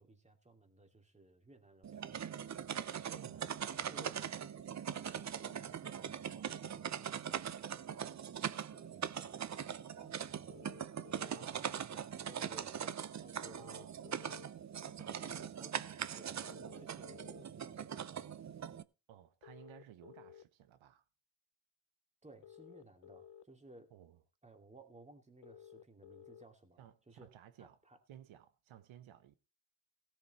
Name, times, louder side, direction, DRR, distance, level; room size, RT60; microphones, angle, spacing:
voice 1, 0.0-4.3 4.8-7.8 8.4-10.8 11.1-13.6 14.1-14.4 14.7-18.3 22.2-23.9 24.4-28.0, right 2 dB, 15° right, 2.5 m, -60 dB
sound 1, 1.8-18.8, right 8 dB, 35° right, 0.7 m, -41 dB
voice 2, 3.1-3.5 11.3-12.1 13.6-14.1 19.1-21.0 23.9-24.2 26.8-27.8 28.1-29.4, right 11 dB, 85° right, 1.2 m, -56 dB
sound 2, 10.5-11.5 13.4-14.5 16.4-17.4 19.4-20.4 22.4-23.4 25.4-26.4, left 10 dB, 65° left, 0.7 m, -55 dB
16.5 x 7.3 x 4.3 m
cardioid pair, 105°, 46 cm